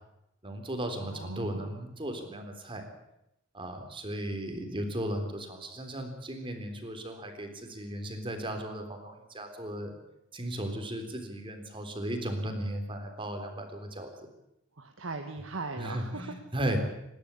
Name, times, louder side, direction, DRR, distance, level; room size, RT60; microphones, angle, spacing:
voice 1, 0.4-2.8 3.5-9.9 10.3-14.1 15.8-16.8, right 1 dB, 25° right, 5 dB, 3.7 m, -36 dB
voice 2, 1.0-1.7 14.8-16.3, right 3 dB, 85° right, 4 dB, 1.7 m, -39 dB
27.0 x 12.0 x 8.5 m, 0.84 s
head